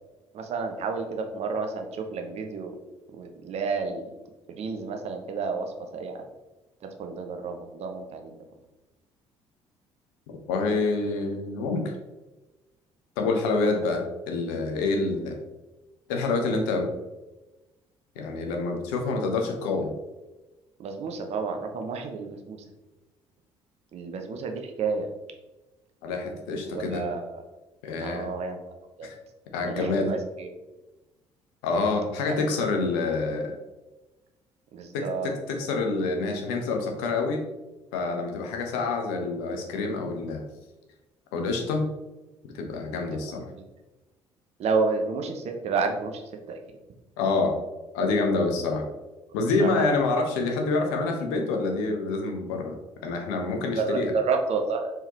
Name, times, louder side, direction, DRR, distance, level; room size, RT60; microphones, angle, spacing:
voice 1, 0.3-2.8 3.1-4.1 4.5-6.2 7.0-8.4 20.8-22.6 23.9-25.1 26.6-27.4 28.0-28.6 29.0-29.1 29.6-30.5 32.3-32.4 34.7-35.3 44.6-46.2 46.5-46.6 49.6-50.0 53.8-54.9, right 4 dB, 45° right, 5 dB, 0.6 m, -30 dB
voice 2, 10.3-11.9 13.2-15.4 16.1-16.9 18.2-19.9 26.0-27.0 27.8-28.3 29.0-29.1 29.5-30.1 31.6-33.5 34.9-37.4 37.9-40.4 41.3-41.9 42.5-43.4 47.2-47.6 47.9-48.8 49.3-52.7 53.0-54.1, left 3 dB, 65° left, 3 dB, 0.7 m, -27 dB
4.4 x 3.7 x 2.8 m, 1.1 s
figure-of-eight pair, 50°, 15 cm